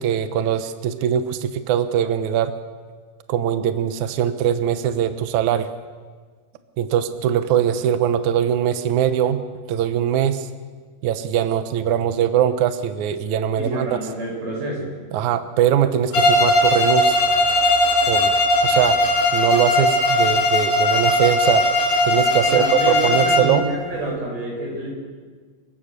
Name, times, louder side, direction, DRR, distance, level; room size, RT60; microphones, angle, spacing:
voice 1, 0.0-2.5 3.3-5.7 6.8-9.4 9.7-10.5 11.0-14.0 15.1-17.2 18.1-18.3 18.6-19.0 19.3-21.7 22.1-23.6, right 9 dB, 85° right, 10 dB, 1.7 m, -21 dB
voice 2, 13.6-15.0 22.4-24.9, right 1 dB, 45° right, -2 dB, 8.8 m, -28 dB
Bowed string instrument, 16.1-23.6, left 1 dB, 55° left, 7.0 m, -18 dB
30.0 x 16.5 x 6.8 m, 1.5 s
omnidirectional pair, 5.0 m